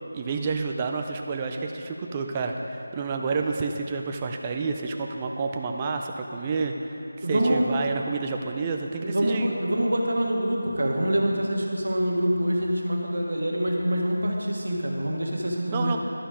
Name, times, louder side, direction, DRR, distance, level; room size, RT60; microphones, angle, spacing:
voice 1, 0.1-7.0 7.3-9.6 15.7-16.0, right 4 dB, 15° right, 3 dB, 0.3 m, -29 dB
voice 2, 7.2-7.7 9.0-16.0, right 1 dB, 65° right, -1 dB, 1.5 m, -25 dB
11.5 x 5.1 x 5.0 m, 3.0 s
figure-of-eight pair, 175°, 0 cm